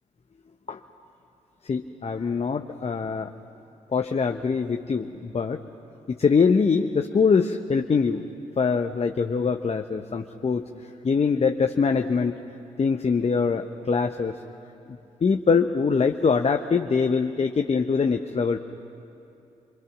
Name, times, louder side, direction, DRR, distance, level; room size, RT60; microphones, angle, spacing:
voice 1, 1.7-3.3 3.9-5.6 6.1-8.2 8.6-10.7 11.0-12.4 12.8-14.4 14.9-18.6, left 5 dB, 35° left, 6 dB, 1.1 m, -23 dB
26.0 x 25.0 x 6.0 m, 2.8 s
hypercardioid pair, 40°, 17 cm